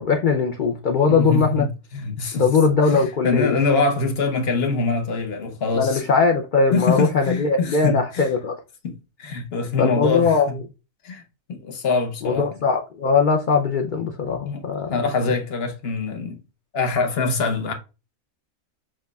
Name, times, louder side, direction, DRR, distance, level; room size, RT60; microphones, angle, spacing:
voice 1, 0.0-1.7 2.3-3.6 5.7-8.5 9.8-10.5 12.2-14.9, left 5 dB, 70° left, 0.4 m, -20 dB
voice 2, 1.1-2.5 2.8-6.0 6.7-8.3 8.8-10.6 11.0-11.2 11.5-12.6 14.4-16.4 16.7-17.7, left 4 dB, 50° left, 1.0 m, -24 dB
7.4 x 2.5 x 2.2 m
omnidirectional pair, 1.5 m